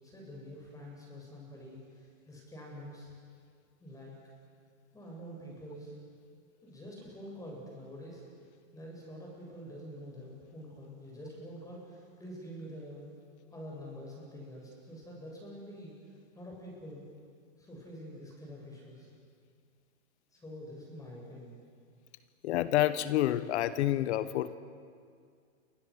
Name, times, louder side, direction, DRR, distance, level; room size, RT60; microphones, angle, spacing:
voice 1, 0.0-3.1 3.8-4.1 4.9-6.0 6.6-8.2 8.7-13.1 13.5-15.9 16.3-17.0 17.6-19.1 20.3-21.6, equal, 10° left, -2 dB, 7.6 m, -46 dB
voice 2, 22.4-24.6, left 13 dB, 55° left, 14 dB, 1.1 m, -28 dB
29.0 x 24.5 x 6.5 m, 2.2 s
hypercardioid pair, 135°, 40 cm